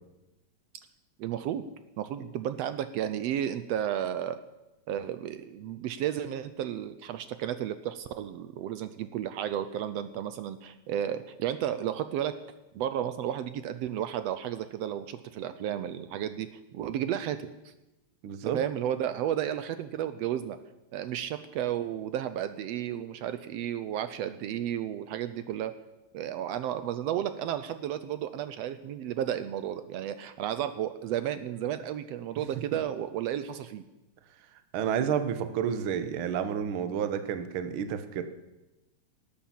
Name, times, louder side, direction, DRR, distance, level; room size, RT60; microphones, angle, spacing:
voice 1, 1.2-1.7 2.0-4.4 4.9-12.3 12.7-17.7 18.4-20.6 20.9-25.7 26.1-33.8, right 10 dB, 75° right, 11 dB, 1.6 m, -33 dB
voice 2, 18.2-18.6 34.7-38.2, right 8 dB, 60° right, 10 dB, 1.5 m, -30 dB
18.5 x 8.7 x 7.4 m, 0.99 s
omnidirectional pair, 3.3 m